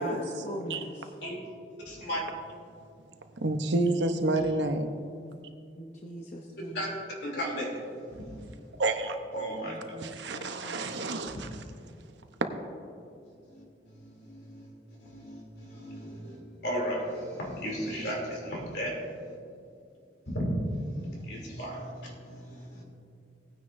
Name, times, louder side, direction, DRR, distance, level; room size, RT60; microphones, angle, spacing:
voice 1, 0.0-1.1 5.8-6.9 9.6-11.0, equal, 40° left, 0 dB, 0.8 m, -40 dB
voice 2, 1.8-2.2 6.7-6.9 7.2-8.5 9.3-10.0 11.3-11.5 13.4-19.4 20.2-22.8, equal, 70° left, -2 dB, 3.0 m, -35 dB
voice 3, 3.4-4.9 8.8-9.2 10.0-11.5, right 2 dB, 80° right, 7 dB, 0.8 m, -28 dB
18.0 x 9.5 x 2.6 m, 2.4 s
head